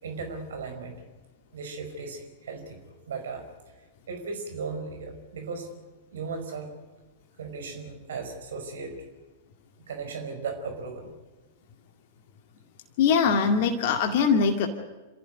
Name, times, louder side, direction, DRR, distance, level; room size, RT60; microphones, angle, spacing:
voice 1, 0.0-1.0 1.5-3.5 4.1-5.7 6.1-6.7 7.4-9.0 9.9-11.1, right 4 dB, 65° right, 5 dB, 5.1 m, -36 dB
voice 2, 13.0-14.7, left 6 dB, 50° left, 4 dB, 2.2 m, -22 dB
28.0 x 15.0 x 9.7 m, 1.2 s
figure-of-eight pair, 100°, 0 cm